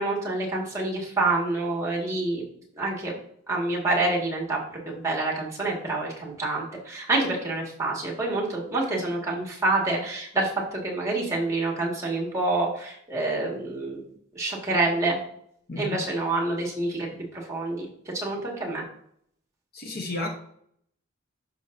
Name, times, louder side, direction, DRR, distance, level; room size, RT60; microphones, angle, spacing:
voice 1, 0.0-2.4 2.7-3.1 3.5-4.6 4.9-14.0 14.3-15.2 15.8-17.1 17.3-17.9 18.1-18.8, right 2 dB, 15° right, -2 dB, 1.9 m, -27 dB
voice 2, 15.7-16.1 19.7-20.3, left 2 dB, 45° left, 3 dB, 0.9 m, -32 dB
11.5 x 5.6 x 2.7 m, 0.69 s
head